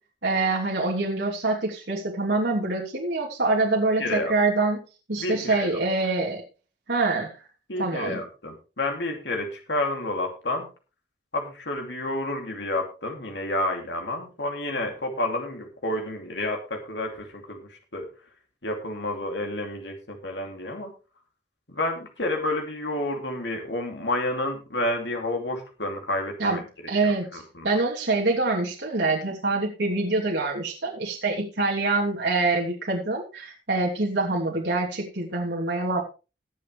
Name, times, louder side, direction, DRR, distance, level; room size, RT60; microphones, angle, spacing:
voice 1, 0.2-4.8 5.1-6.4 6.9-7.3 7.8-8.2 26.4-26.6 26.9-36.0, right 3 dB, 80° right, -2 dB, 3.1 m, -25 dB
voice 2, 4.0-4.3 5.2-5.7 7.7-10.7 11.3-18.1 18.6-20.9 21.7-27.8, left 1 dB, 80° left, 3 dB, 2.8 m, -30 dB
21.0 x 7.5 x 3.3 m, 0.32 s
head